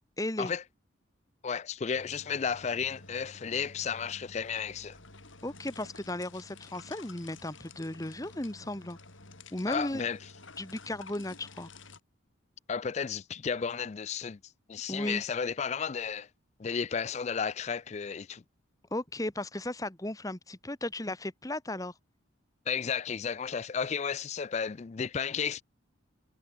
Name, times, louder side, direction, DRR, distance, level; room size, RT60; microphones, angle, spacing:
voice 1, 0.2-0.5 5.4-9.0 9.5-10.1 10.6-11.7 14.9-15.2 18.9-21.9, left 1 dB, 15° left, 1.2 m, -35 dB
voice 2, 1.4-5.0 9.7-10.2 12.7-14.4 14.7-16.3 16.6-18.4 22.7-25.6, left 6 dB, 35° left, 0.4 m, -33 dB
sound 1, 1.9-12.0, left 3 dB, 75° left, 5.3 m, -51 dB
head